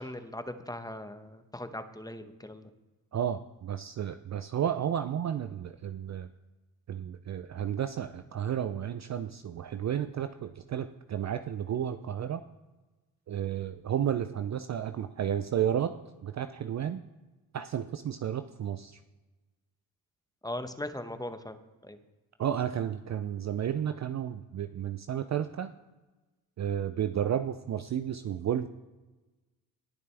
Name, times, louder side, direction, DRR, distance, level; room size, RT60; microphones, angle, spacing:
voice 1, 0.0-2.7 20.4-21.6 21.8-22.0, left 1 dB, 10° left, 9 dB, 1.1 m, -39 dB
voice 2, 3.1-6.3 6.9-12.4 13.3-15.9 16.2-17.0 17.5-19.0 22.4-25.7 26.6-28.7, right 9 dB, 35° right, 10 dB, 0.5 m, -32 dB
19.5 x 6.6 x 3.5 m, 1.2 s
hypercardioid pair, 55°, 46 cm